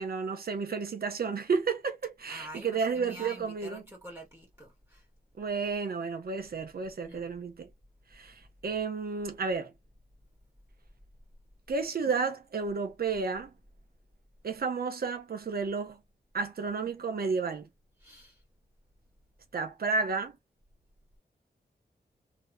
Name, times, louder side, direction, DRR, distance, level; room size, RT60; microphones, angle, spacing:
voice 1, 0.0-3.8 5.4-7.7 8.1-9.7 11.7-13.5 14.4-16.0 16.3-17.7 19.5-20.4, right 5 dB, 65° right, 1.0 m, -32 dB
voice 2, 2.3-5.0 7.0-7.2 18.0-18.4, right 1 dB, 15° right, 1.9 m, -47 dB
3.5 x 3.1 x 2.8 m
wide cardioid pair, 80°, 17 cm